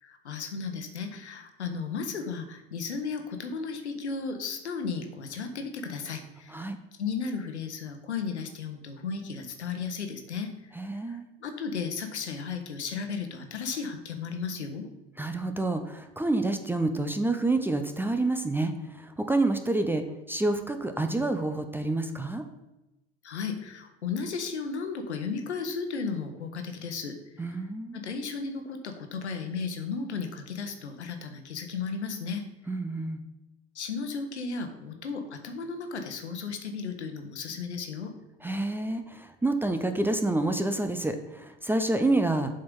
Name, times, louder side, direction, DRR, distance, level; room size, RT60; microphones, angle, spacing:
voice 1, 0.0-6.6 7.0-14.9 23.2-27.2 27.4-27.6 27.9-32.4 33.7-38.2, left 5 dB, 80° left, 6 dB, 1.1 m, -34 dB
voice 2, 10.8-11.3 15.2-22.4 27.4-28.0 32.7-33.2 38.4-42.6, right 2 dB, 5° right, 7 dB, 0.5 m, -28 dB
7.5 x 4.5 x 5.3 m, 0.96 s
figure-of-eight pair, 80°, 34 cm